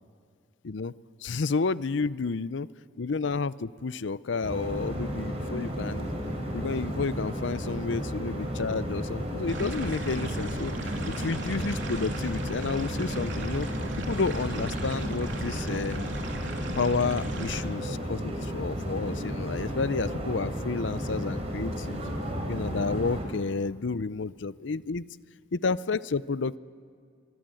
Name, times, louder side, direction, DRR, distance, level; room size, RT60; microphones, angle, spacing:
voice 1, 1.2-2.7 3.0-6.1 6.5-13.7 14.0-16.1 16.8-22.0 22.5-25.0 25.5-26.6, left 4 dB, 70° left, 17 dB, 0.6 m, -31 dB
sound 1, 4.4-23.2, equal, 35° right, 4.6 m, -33 dB
sound 2, 9.5-17.6, right 1 dB, 70° right, 3.2 m, -37 dB
24.0 x 23.5 x 7.8 m, 2.2 s
head